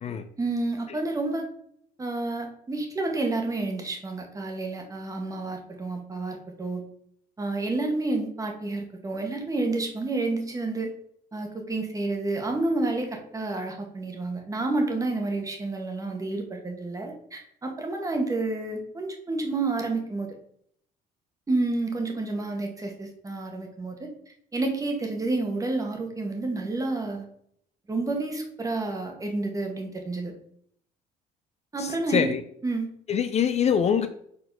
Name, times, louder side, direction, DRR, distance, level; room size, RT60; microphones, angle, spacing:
voice 1, 0.4-1.4 2.0-6.8 7.4-10.9 11.3-20.3 21.5-24.1 24.5-27.3 27.9-30.3 31.7-32.3 32.6-32.9, right 2 dB, 20° right, 2 dB, 1.4 m, -29 dB
voice 2, 31.8-32.4 33.1-34.1, left 8 dB, 40° left, 10 dB, 0.5 m, -24 dB
4.8 x 4.0 x 5.3 m, 0.67 s
cardioid pair, 110°, 17 cm